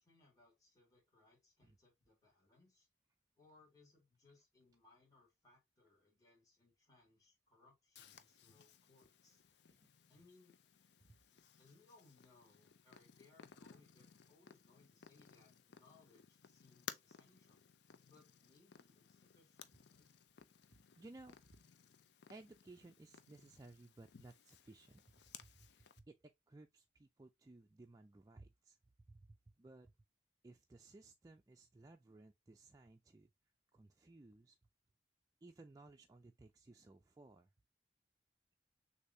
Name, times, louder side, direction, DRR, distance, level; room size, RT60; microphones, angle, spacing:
voice 1, 0.0-2.9 3.4-9.4 10.1-10.6 11.3-17.6 18.0-20.1, left 3 dB, 20° left, 2.1 m, -69 dB
Purr, 7.9-26.0, left 8 dB, 65° left, 0.5 m, -59 dB
voice 2, 20.7-21.4 22.3-25.0 25.4-25.7 26.0-28.8 29.1-29.9 30.4-33.3 33.7-34.6 35.4-37.5, right 2 dB, 20° right, 0.3 m, -59 dB
6.5 x 2.7 x 2.7 m
head